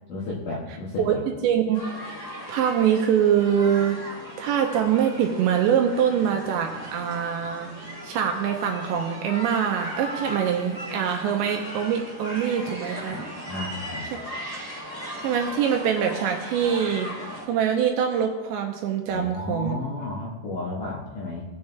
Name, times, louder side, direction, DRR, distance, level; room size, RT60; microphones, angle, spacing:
voice 1, 0.1-1.2 13.5-14.1 19.1-21.5, left 2 dB, 70° left, -5 dB, 2.0 m, -32 dB
voice 2, 1.0-1.8 2.1-4.0 4.4-13.2 14.1-14.2 15.2-17.1 17.5-19.8, right 8 dB, 80° right, 3 dB, 2.8 m, -24 dB
sound 1, 1.7-17.4, equal, 30° left, 2.4 m, -37 dB
18.0 x 7.1 x 3.4 m, 1.1 s
omnidirectional pair, 5.7 m